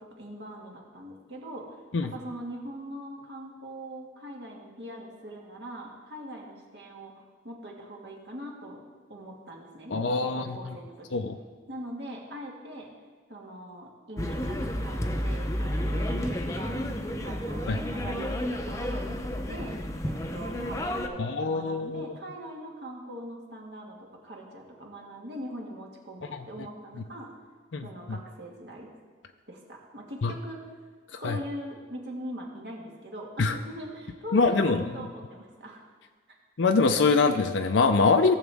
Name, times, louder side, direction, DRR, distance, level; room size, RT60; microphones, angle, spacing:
voice 1, 0.0-1.8 2.0-8.8 9.1-11.2 11.7-12.9 13.3-19.2 19.4-19.8 20.0-27.3 27.8-28.9 29.5-30.6 31.2-35.8 36.3-36.4, right 1 dB, 70° right, -1 dB, 1.8 m, -42 dB
voice 2, 9.9-10.6 11.1-11.4 17.7-17.8 21.2-22.0 26.3-26.4 27.7-28.2 30.2-30.3 31.1-31.4 33.4-33.6 34.3-34.8 36.6-38.3, left 4 dB, 85° left, 6 dB, 0.5 m, -24 dB
sound 1, 14.2-21.1, equal, 15° left, 0.6 m, -31 dB
17.0 x 7.2 x 3.5 m, 1.5 s
head